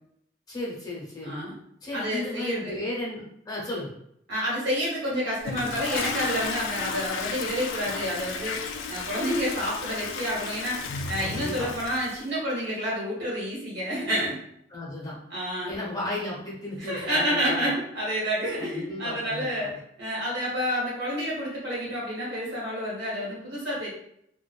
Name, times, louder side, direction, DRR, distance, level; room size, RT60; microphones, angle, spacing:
voice 1, 0.5-1.4 1.8-3.9 11.2-11.7 14.7-15.2 15.6-17.7 18.6-19.5, left 2 dB, 20° left, -5 dB, 0.8 m, -34 dB
voice 2, 1.2-1.5 1.9-2.8 4.3-14.4 15.3-15.7 16.8-23.9, equal, 60° right, -5 dB, 1.2 m, -29 dB
Toilet flush, 5.4-12.2, left 5 dB, 85° left, 0.3 m, -33 dB
2.5 x 2.2 x 2.3 m, 0.73 s
head